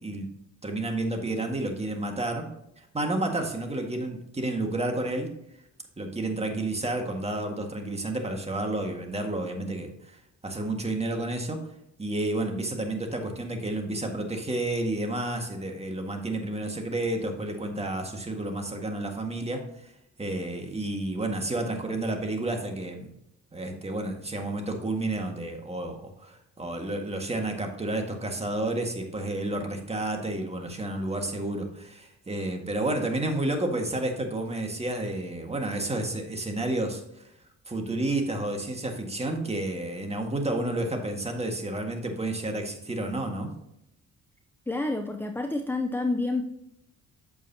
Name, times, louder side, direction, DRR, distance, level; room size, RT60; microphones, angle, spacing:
voice 1, 0.0-0.3 0.6-2.5 2.9-5.3 6.0-10.2 10.4-11.6 12.0-19.6 20.2-23.1 23.5-37.0 37.7-43.5, right 2 dB, 20° right, 3 dB, 1.7 m, -30 dB
voice 2, 44.7-46.4, left 2 dB, 5° left, 6 dB, 0.6 m, -28 dB
8.5 x 6.9 x 2.8 m, 0.81 s
cardioid pair, 90°, 30 cm